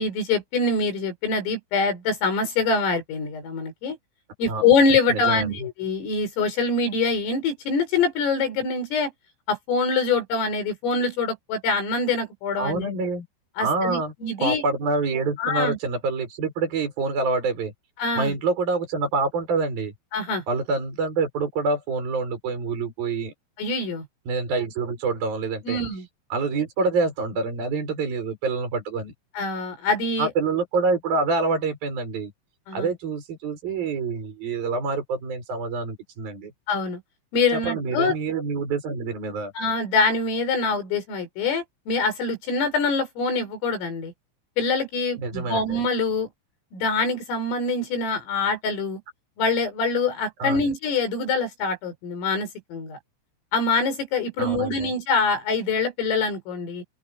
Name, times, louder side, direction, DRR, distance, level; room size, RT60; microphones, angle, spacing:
voice 1, 0.0-4.0 4.4-9.1 9.5-12.9 13.6-14.6 15.4-15.8 18.0-18.3 20.1-20.4 23.6-24.1 25.6-26.1 29.4-30.3 32.7-32.9 36.7-37.0 37.3-38.2 39.6-44.1 44.6-46.3 46.7-49.0 49.4-53.0 53.5-56.8, left 4 dB, 90° left, 8.9 m, -24 dB
voice 2, 5.1-5.7 12.6-13.3 13.6-14.1 14.4-17.7 18.2-19.9 20.5-23.3 24.3-25.8 26.3-29.1 30.2-32.3 32.7-36.5 37.5-39.5 45.2-45.8 50.4-50.6 54.4-54.9, right 4 dB, 45° right, 8.9 m, -26 dB
open air
omnidirectional pair, 5.7 m